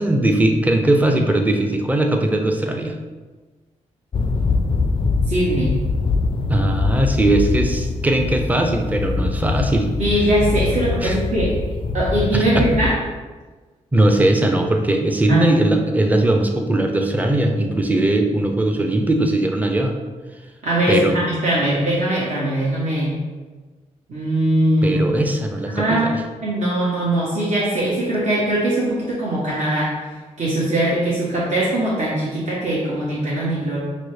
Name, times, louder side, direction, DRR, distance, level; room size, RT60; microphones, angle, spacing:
voice 1, 0.0-2.9 6.5-9.9 10.4-10.5 11.0-11.2 12.3-12.7 13.9-19.9 20.9-21.2 24.8-26.2, right 1 dB, 10° right, 4 dB, 0.5 m, -19 dB
sound 1, 4.1-12.9, left 4 dB, 40° left, 0.3 m, -23 dB
voice 2, 5.3-5.7 10.0-11.5 11.9-12.9 15.3-15.5 20.6-23.1 24.1-25.2 25.7-26.1 26.4-29.9 30.4-33.8, right 1 dB, 60° right, -7 dB, 1.0 m, -21 dB
5.9 x 2.0 x 3.2 m, 1.3 s
cardioid pair, 60°, 14 cm